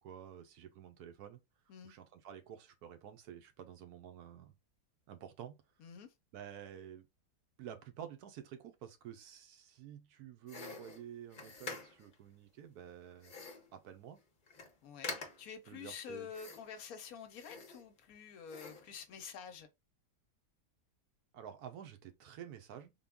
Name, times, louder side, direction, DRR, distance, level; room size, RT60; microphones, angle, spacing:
voice 1, 0.0-1.4 1.8-4.5 5.1-5.6 6.3-7.1 7.6-13.3 13.7-14.2 15.7-16.3 21.3-22.9, right 9 dB, 75° right, 1.1 m, -50 dB
voice 2, 5.8-6.1 14.8-19.7, left 6 dB, 70° left, 1.0 m, -48 dB
sound 1, 10.5-12.2 13.2-13.7 14.2-14.3 14.5-14.7 15.0-15.6 16.3-16.9 17.3-18.1 18.5-18.9, left 4 dB, 40° left, 0.8 m, -46 dB
3.7 x 2.2 x 3.5 m
omnidirectional pair, 1.7 m